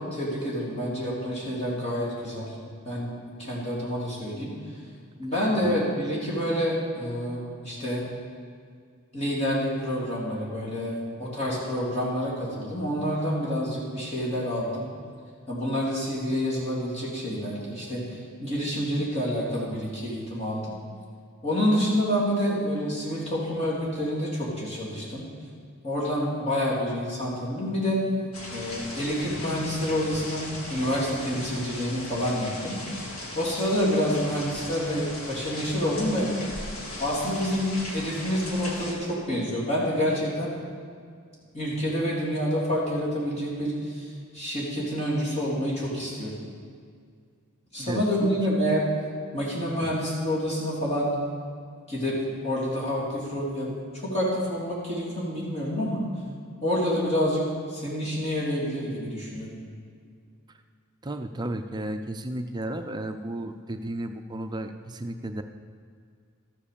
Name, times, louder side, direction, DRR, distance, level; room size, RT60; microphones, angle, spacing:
voice 1, 0.0-2.5 2.9-3.1 3.4-4.5 5.2-8.0 9.1-14.9 15.5-20.6 21.4-25.3 25.8-28.0 28.5-32.8 33.4-36.3 37.0-40.6 41.5-44.1 44.3-46.3 47.7-48.8 49.3-51.1 51.9-52.1 52.4-56.0 56.6-59.5, equal, 30° left, -6 dB, 3.6 m, -28 dB
sound 1, 28.3-38.9, left 1 dB, 85° left, 2.3 m, -38 dB
voice 2, 47.8-48.4 49.8-50.0 61.0-65.4, right 1 dB, 20° right, 6 dB, 0.4 m, -33 dB
13.0 x 7.5 x 6.9 m, 2.1 s
head